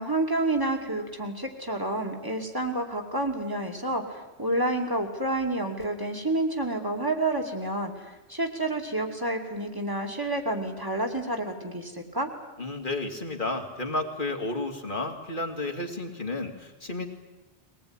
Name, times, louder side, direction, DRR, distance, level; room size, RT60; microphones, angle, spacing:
voice 1, 0.0-12.3, right 2 dB, 20° right, 3 dB, 2.7 m, -29 dB
voice 2, 12.6-17.1, left 2 dB, 50° left, 4 dB, 2.5 m, -32 dB
22.0 x 19.5 x 9.8 m, 1.0 s
omnidirectional pair, 1.1 m